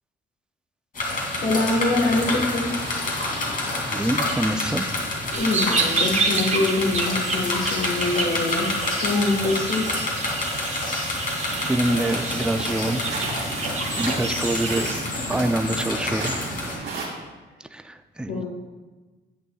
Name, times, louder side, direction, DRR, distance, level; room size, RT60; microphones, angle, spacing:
sound 1, 0.9-16.8, left 2 dB, 45° left, 2.7 m, -28 dB
voice 1, 1.3-2.7 5.3-9.9 18.3-18.4, left 2 dB, 75° left, -4 dB, 1.5 m, -24 dB
voice 2, 3.9-4.8 11.7-13.0 14.0-14.9 15.3-16.4 17.6-18.4, right 1 dB, 5° right, 9 dB, 0.4 m, -25 dB
sound 2, 5.3-14.9, right 4 dB, 35° right, 1.0 m, -29 dB
sound 3, 11.5-17.1, right 3 dB, 70° right, 2.5 m, -34 dB
11.0 x 8.3 x 2.4 m, 1.2 s
cardioid pair, 90°, 20 cm